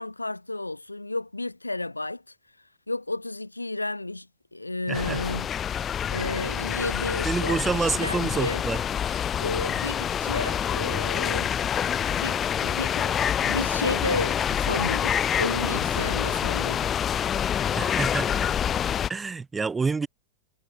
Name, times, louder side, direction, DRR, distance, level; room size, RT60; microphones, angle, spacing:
voice 1, 0.0-2.2 2.9-4.3 4.5-5.5 6.1-8.6 9.4-11.5 12.1-17.0, left 2 dB, 85° left, 6.5 m, -32 dB
sound 1, 4.9-19.1, left 9 dB, 25° left, 1.7 m, -27 dB
voice 2, 4.9-5.2 7.2-8.8 17.8-18.5 19.1-20.1, right 4 dB, 15° right, 6.8 m, -28 dB
figure-of-eight pair, 90°, 0 cm